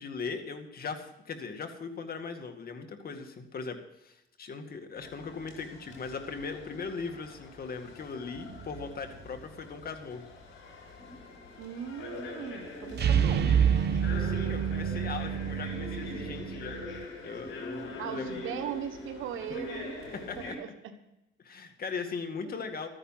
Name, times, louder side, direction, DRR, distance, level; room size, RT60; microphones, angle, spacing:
voice 1, 0.0-10.2 14.0-18.3 20.1-20.6 21.4-22.9, left 5 dB, 50° left, 6 dB, 2.1 m, -39 dB
sound 1, 5.0-20.5, left 2 dB, 85° left, 5.3 m, -43 dB
sound 2, 8.4-8.9 12.9-17.0, right 8 dB, 55° right, 0.9 m, -28 dB
voice 2, 11.6-13.6 18.0-19.9 20.4-20.7 22.4-22.5, right 9 dB, 85° right, 7 dB, 1.4 m, -39 dB
14.0 x 9.9 x 5.8 m, 0.89 s
cardioid pair, 90°, 20 cm